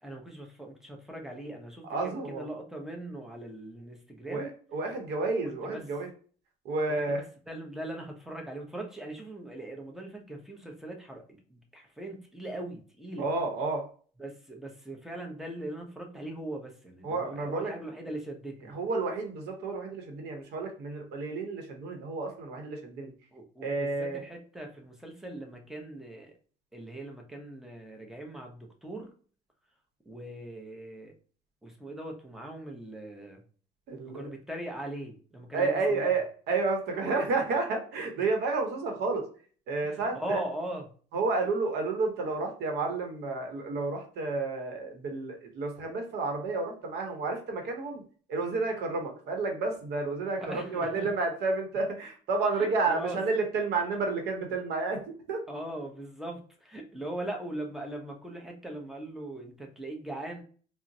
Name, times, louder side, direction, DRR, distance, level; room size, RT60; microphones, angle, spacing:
voice 1, 0.0-4.5 5.7-5.8 6.9-7.2 7.5-13.3 14.2-18.8 23.3-26.3 26.7-29.1 30.1-31.1 31.6-33.4 34.0-36.1 39.8-40.9 50.4-51.1 52.6-53.2 55.5-60.4, right 1 dB, ahead, 1 dB, 0.7 m, -40 dB
voice 2, 1.9-2.5 4.3-6.1 6.6-7.2 13.2-13.8 17.0-17.7 18.7-23.1 23.6-24.2 33.9-34.3 35.5-39.2 39.7-40.4 41.1-48.0 48.3-55.4, right 3 dB, 75° right, 3 dB, 0.8 m, -31 dB
3.8 x 2.0 x 2.6 m, 0.42 s
cardioid pair, 110°, 17 cm